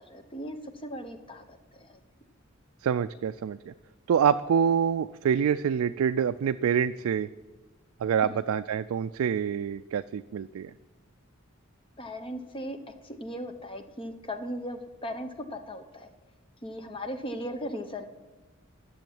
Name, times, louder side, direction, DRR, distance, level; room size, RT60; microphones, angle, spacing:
voice 1, 0.0-2.0 8.2-8.4 12.0-12.8 13.0-16.1 16.6-18.0, equal, 25° left, 7 dB, 0.9 m, -38 dB
voice 2, 2.8-3.7 4.1-7.3 8.0-10.7, right 7 dB, 85° right, 10 dB, 0.3 m, -26 dB
10.5 x 7.1 x 9.2 m, 1.2 s
head